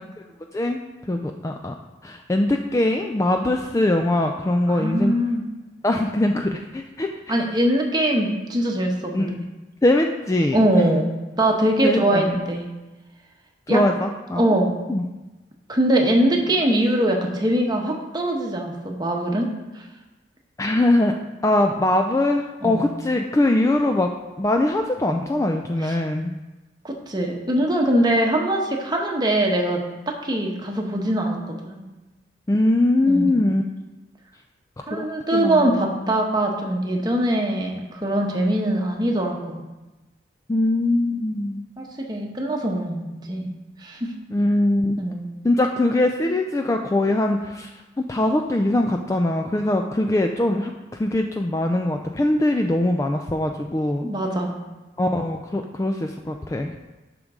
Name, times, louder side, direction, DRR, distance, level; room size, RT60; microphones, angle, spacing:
voice 1, 1.1-1.7 2.0-5.1 5.8-7.4 9.1-9.4 9.8-10.6 11.8-12.3 13.7-14.4 14.9-15.0 20.6-21.1 21.4-24.1 24.4-26.3 32.5-33.6 34.9-35.0 35.3-35.9 40.5-41.6 44.3-45.0 45.4-47.7 48.1-50.7 51.0-54.0 55.0-56.7, left 1 dB, 15° left, 4 dB, 0.3 m, -22 dB
voice 2, 4.7-5.4 7.3-9.4 10.5-11.1 11.4-12.7 13.7-13.8 14.3-14.7 15.7-19.5 19.7-19.8 22.6-22.9 25.8-26.0 26.8-29.8 30.2-31.8 33.0-33.3 34.9-39.6 41.8-43.5 43.8-44.1 45.0-45.2 54.0-54.5, right 1 dB, 20° right, 1 dB, 1.1 m, -22 dB
11.5 x 5.2 x 3.6 m, 1.1 s
head